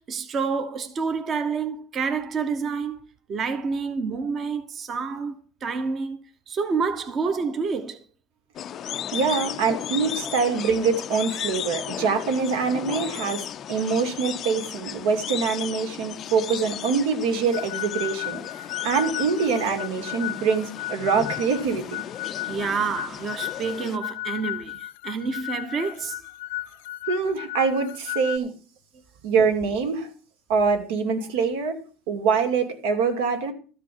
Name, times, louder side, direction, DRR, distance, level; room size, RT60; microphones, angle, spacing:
voice 1, 0.0-3.0 3.3-5.3 5.6-8.0 10.2-10.3 22.4-26.3, right 5 dB, 25° right, 0.8 m, -28 dB
sound 1, 8.5-24.0, left 10 dB, 30° left, 0.5 m, -35 dB
voice 2, 9.1-22.0 27.1-28.5 29.2-30.1 30.5-31.8 32.1-33.5, right 5 dB, 85° right, 2.6 m, -24 dB
sound 2, 17.5-28.4, left 17 dB, 85° left, 0.5 m, -34 dB
13.0 x 5.0 x 8.5 m
cardioid pair, 170°, 0 cm